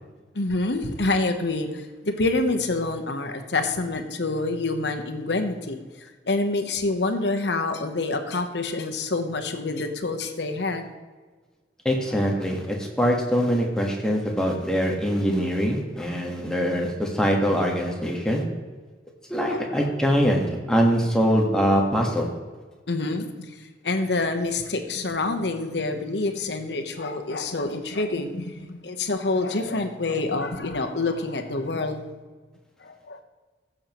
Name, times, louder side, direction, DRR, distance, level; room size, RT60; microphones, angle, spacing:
voice 1, 0.3-5.8 6.2-10.9 19.5-19.6 22.9-23.6 23.8-32.0 32.8-33.2, left 2 dB, 75° left, 6 dB, 1.0 m, -27 dB
voice 2, 11.8-18.4 19.3-22.3, equal, 5° left, -1 dB, 1.5 m, -23 dB
15.5 x 7.2 x 3.1 m, 1.4 s
head